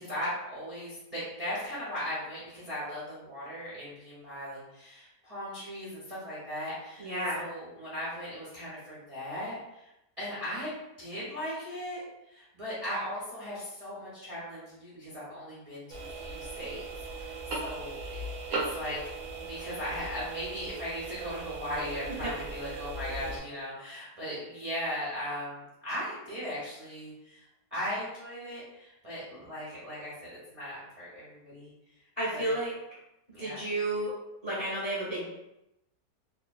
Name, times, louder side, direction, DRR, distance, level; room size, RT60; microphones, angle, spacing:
voice 1, 0.0-9.9 10.2-12.0 12.3-16.8 17.2-18.2 18.5-19.0 19.4-27.4 27.7-31.7 32.3-32.6 33.3-33.7, equal, 35° right, -10 dB, 0.5 m, -38 dB
voice 2, 7.0-7.4 32.2-32.7 33.4-34.1 34.4-35.3, right 1 dB, 35° left, -9 dB, 0.6 m, -31 dB
sound 1, 15.9-23.4, right 3 dB, 65° right, 0.8 m, -38 dB
3.0 x 2.2 x 2.2 m, 0.88 s
omnidirectional pair, 1.8 m